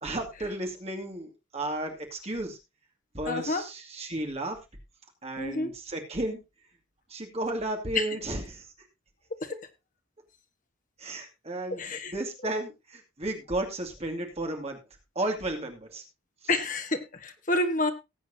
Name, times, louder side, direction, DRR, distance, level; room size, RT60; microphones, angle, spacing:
voice 1, 0.0-2.6 3.1-4.6 5.2-6.4 7.1-8.7 9.5-9.6 11.0-11.8 12.1-14.8 15.1-16.0 16.4-16.5, right 1 dB, 30° right, 2 dB, 2.5 m, -33 dB
voice 2, 3.2-3.6 5.4-5.7 7.9-8.1 9.4-9.6 11.7-12.1 16.5-17.9, left 2 dB, 40° left, 7 dB, 1.4 m, -29 dB
19.0 x 8.0 x 2.8 m, 0.24 s
head